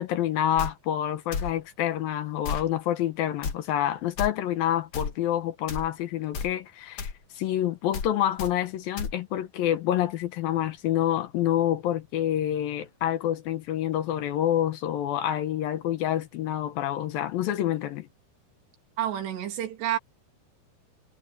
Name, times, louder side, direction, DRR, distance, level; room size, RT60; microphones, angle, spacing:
voice 1, 0.0-18.1, left 11 dB, 70° left, 2.6 m, -27 dB
sound 1, 0.6-0.7 1.3-1.5 2.4-2.7 3.4-3.6 4.2-4.3 4.9-5.1 5.7-5.9 6.3-6.5 7.0-7.2 7.9-8.1 8.4-8.5 9.0-9.1, left 5 dB, 45° left, 2.2 m, -32 dB
voice 2, 19.0-20.0, right 11 dB, 90° right, 4.8 m, -29 dB
omnidirectional pair, 4.8 m